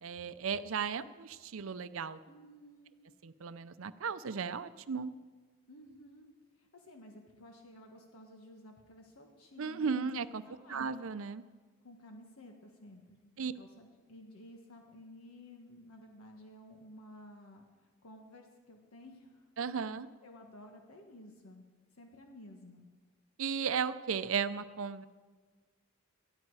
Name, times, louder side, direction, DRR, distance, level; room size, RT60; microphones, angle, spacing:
voice 1, 0.0-2.2 3.2-5.1 9.6-10.4 10.7-11.4 13.4-13.5 19.6-20.1 23.4-25.0, right 6 dB, 70° right, 13 dB, 0.5 m, -35 dB
voice 2, 2.3-3.0 5.7-6.3 6.5-10.1 10.4-10.8 11.8-19.5 20.2-21.7 21.9-22.9, left 1 dB, 90° left, 2 dB, 1.5 m, -54 dB
19.5 x 13.0 x 4.8 m, 1.4 s
head